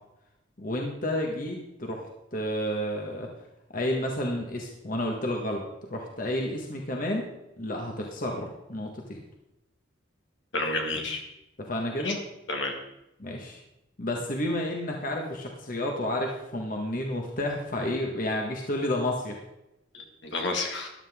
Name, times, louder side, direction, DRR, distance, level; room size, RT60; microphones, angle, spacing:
voice 1, 0.6-2.0 2.3-3.3 3.7-5.6 5.9-7.3 7.6-9.2 11.6-12.2 13.2-13.6 14.0-19.4, left 1 dB, 45° left, 1 dB, 1.6 m, -30 dB
voice 2, 10.5-11.2 12.0-12.2 12.5-12.7 19.9-20.9, left 2 dB, 65° left, 3 dB, 2.0 m, -30 dB
14.0 x 12.0 x 3.7 m, 0.90 s
head